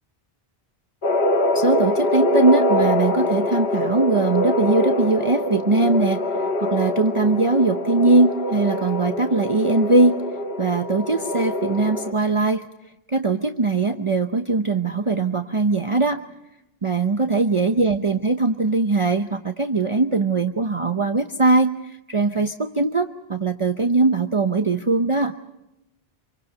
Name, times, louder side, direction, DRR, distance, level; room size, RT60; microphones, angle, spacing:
sound 1, 1.0-12.1, left 1 dB, 70° left, 1.7 m, -24 dB
voice 1, 1.5-10.2 10.6-12.7 13.1-16.2 16.8-25.3, right 3 dB, 30° right, 6 dB, 0.9 m, -21 dB
27.5 x 24.0 x 5.1 m, 0.88 s
omnidirectional pair, 1.1 m